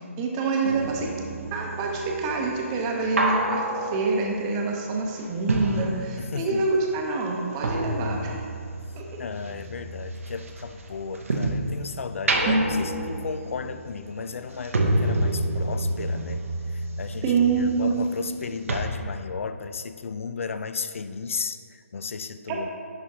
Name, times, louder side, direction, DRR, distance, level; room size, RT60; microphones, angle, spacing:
voice 1, 0.2-1.1 1.5-8.4 8.9-9.0 12.5-12.8 17.2-18.0, right 3 dB, 20° right, 0 dB, 0.8 m, -26 dB
sound 1, 0.6-6.6 6.9-11.7 12.1-18.4 18.7-18.8, right 1 dB, 70° right, 0.9 m, -29 dB
voice 2, 6.2-6.7 9.2-16.4 16.7-22.7, left 5 dB, 65° left, 11 dB, 0.4 m, -34 dB
11.0 x 4.1 x 2.9 m, 2.2 s
figure-of-eight pair, 145°, 8 cm